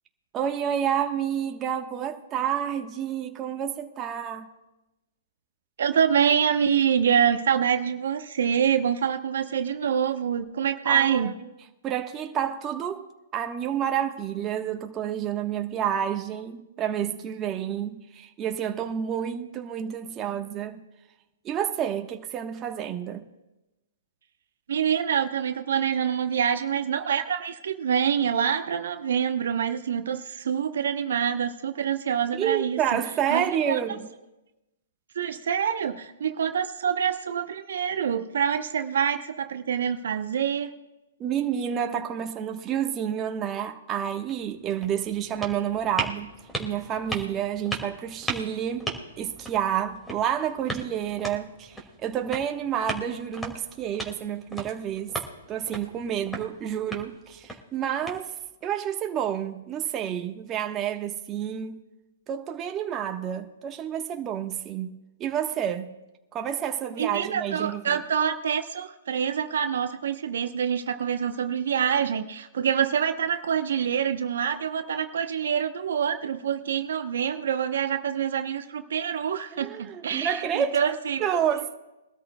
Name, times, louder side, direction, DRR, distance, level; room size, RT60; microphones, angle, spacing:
voice 1, 0.3-4.5 10.8-11.3 11.8-13.1 13.3-20.8 21.4-23.2 32.3-34.1 41.2-46.3 46.6-48.9 49.2-55.1 55.5-58.3 58.6-61.8 62.3-64.9 65.2-65.9 66.3-68.0 79.5-80.8 81.2-81.7, right 9 dB, 25° right, 1.2 m, -29 dB
voice 2, 5.8-11.3 24.7-33.0 33.3-33.8 35.1-40.7 67.0-81.6, right 8 dB, 70° right, 0.8 m, -26 dB
sound 1, 44.2-58.7, right 2 dB, 5° left, 2.2 m, -38 dB
23.0 x 13.0 x 2.3 m
hypercardioid pair, 125°, 0 cm